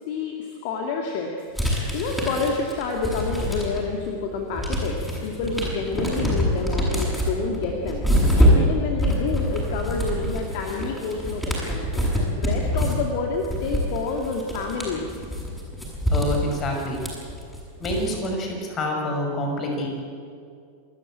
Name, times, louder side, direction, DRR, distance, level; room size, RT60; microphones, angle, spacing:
voice 1, 0.1-11.4 11.7-15.2, left 4 dB, 50° left, 2 dB, 2.2 m, -29 dB
sound 1, 1.5-4.0 4.3-18.3, equal, 5° left, 7.6 m, -25 dB
voice 2, 16.1-17.0 17.8-19.9, left 1 dB, 30° left, 2 dB, 5.9 m, -27 dB
28.0 x 13.5 x 8.9 m, 2.4 s
figure-of-eight pair, 90°, 0 cm